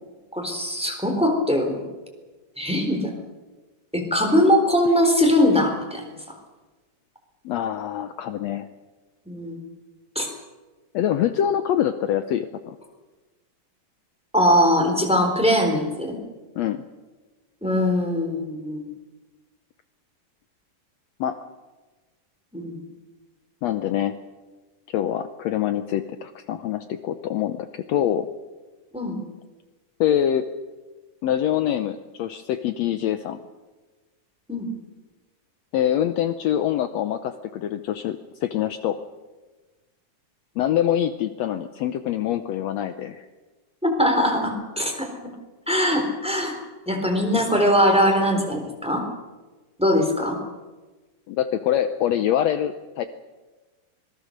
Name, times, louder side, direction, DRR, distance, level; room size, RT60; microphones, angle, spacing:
voice 1, 0.3-1.9 2.6-3.1 3.9-6.0 9.3-9.6 10.1-10.3 14.3-16.2 17.6-18.8 22.5-22.8 28.9-29.2 34.5-34.7 43.8-45.3 45.7-46.6 46.8-49.0 49.8-50.4, equal, ahead, 3 dB, 3.4 m, -21 dB
voice 2, 7.4-8.7 10.9-12.8 16.5-16.8 21.2-21.4 23.6-24.2 24.9-28.3 30.0-30.4 31.2-33.4 35.7-39.0 40.6-43.2 51.3-53.0, left 10 dB, 80° left, 10 dB, 1.5 m, -25 dB
25.5 x 19.5 x 6.6 m, 1.2 s
omnidirectional pair, 4.0 m